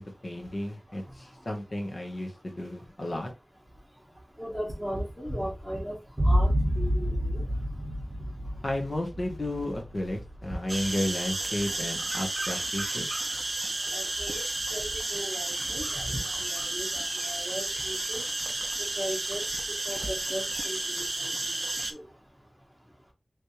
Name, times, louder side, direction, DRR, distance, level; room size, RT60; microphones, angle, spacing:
voice 1, 0.0-3.3 8.6-13.1, left 1 dB, 55° left, 1.3 m, -33 dB
voice 2, 4.4-6.0 6.2-7.4 13.9-14.4 14.7-18.2 18.8-19.4 19.8-22.0, equal, 10° left, 1.2 m, -37 dB
sound 1, 6.2-13.6, equal, 30° right, 1.0 m, -30 dB
sound 2, 10.7-21.9, right 2 dB, 50° right, 0.6 m, -32 dB
3.3 x 3.2 x 2.8 m
wide cardioid pair, 75°, 0 cm